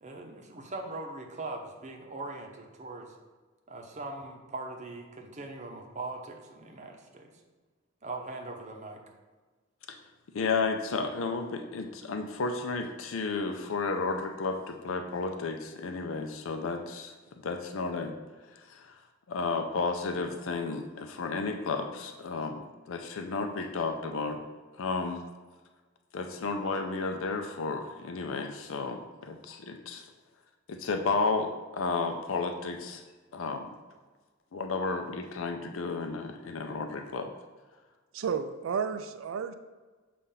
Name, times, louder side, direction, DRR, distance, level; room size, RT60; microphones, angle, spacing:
voice 1, 0.0-3.1 3.7-7.3 8.0-9.0, right 2 dB, 35° right, 2 dB, 0.8 m, -40 dB
voice 2, 10.3-17.1 17.4-18.1 18.7-18.9 19.3-22.6 22.9-24.4 24.8-25.2 26.1-30.0 30.7-33.0 33.3-33.7 34.5-37.3, left 4 dB, 80° left, 5 dB, 0.5 m, -32 dB
voice 3, 38.1-39.5, right 6 dB, 85° right, 10 dB, 0.4 m, -32 dB
6.8 x 2.5 x 5.6 m, 1.3 s
head